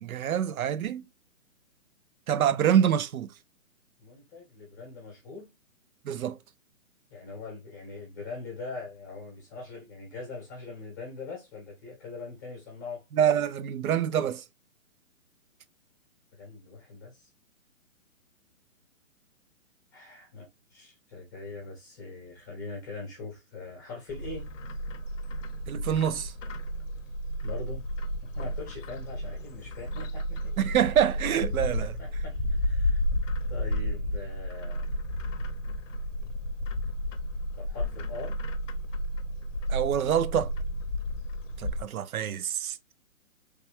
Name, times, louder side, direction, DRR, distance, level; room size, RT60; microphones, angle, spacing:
voice 1, 0.0-1.0 2.3-3.3 6.0-6.4 13.1-14.4 25.7-26.3 30.6-31.9 39.7-40.5 41.6-42.8, right 9 dB, 85° right, 0.6 m, -26 dB
voice 2, 4.0-5.5 7.1-13.0 16.4-17.3 19.9-24.5 27.4-27.9 28.2-30.5 32.0-33.0 33.5-34.9 37.5-38.4, left 3 dB, 15° left, 0.8 m, -42 dB
Bird, 24.1-41.8, equal, 65° left, 0.6 m, -32 dB
3.2 x 2.2 x 3.2 m
hypercardioid pair, 170°, 41 cm